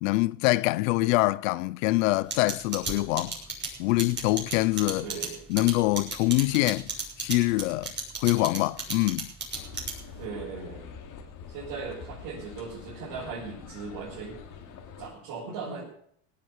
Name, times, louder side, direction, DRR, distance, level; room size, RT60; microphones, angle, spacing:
voice 1, 0.0-3.4 3.8-5.1 5.5-6.9 7.2-7.9 8.2-9.3, left 20 dB, 90° left, 0.7 m, -24 dB
sound 1, 2.3-10.2, right 5 dB, 30° right, 6.5 m, -33 dB
voice 2, 5.0-5.4 10.2-10.8 11.5-14.4 15.0-15.8, right 5 dB, 60° right, 6.2 m, -38 dB
sound 2, 9.5-15.1, left 6 dB, 55° left, 3.0 m, -45 dB
17.5 x 7.8 x 8.3 m
supercardioid pair, 110°, 38 cm